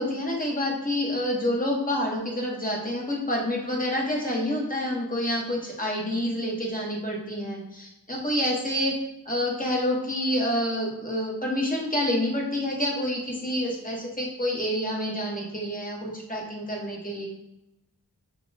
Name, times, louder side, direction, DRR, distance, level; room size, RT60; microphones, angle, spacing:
voice 1, 0.0-9.0 9.2-17.3, left 1 dB, 20° left, -2 dB, 1.2 m, -28 dB
6.6 x 2.3 x 2.8 m, 0.88 s
wide cardioid pair, 55°, 40 cm